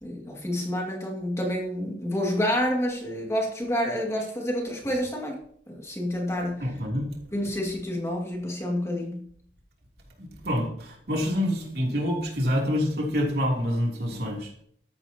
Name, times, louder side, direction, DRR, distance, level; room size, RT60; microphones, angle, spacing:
voice 1, 0.0-5.4 5.7-6.7 7.3-9.3, equal, 15° left, -1 dB, 2.2 m, -28 dB
voice 2, 6.6-7.1 10.2-14.5, equal, 60° right, -1 dB, 3.2 m, -27 dB
14.0 x 11.5 x 2.9 m, 0.63 s
head